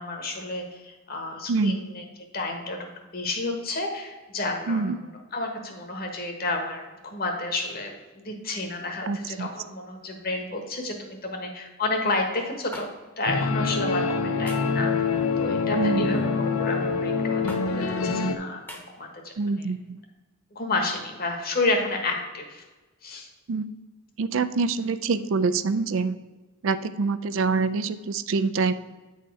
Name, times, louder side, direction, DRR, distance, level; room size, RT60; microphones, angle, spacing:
voice 1, 0.0-2.0 2.3-2.8 3.1-4.8 5.3-12.9 13.2-19.3 20.5-22.6 23.0-23.3, left 2 dB, 45° left, 4 dB, 1.2 m, -30 dB
voice 2, 9.1-9.5 15.8-16.1 19.4-20.0 23.5-23.6 24.2-26.2 26.6-28.7, right 4 dB, 65° right, 12 dB, 0.4 m, -25 dB
sound 1, 12.7-12.9 14.5-14.7 16.1-16.4 17.5-17.6 18.7-18.8, left 1 dB, 10° left, 0.9 m, -40 dB
sound 2, 13.3-18.4, left 4 dB, 75° left, 0.6 m, -25 dB
8.9 x 4.3 x 4.8 m, 1.2 s
head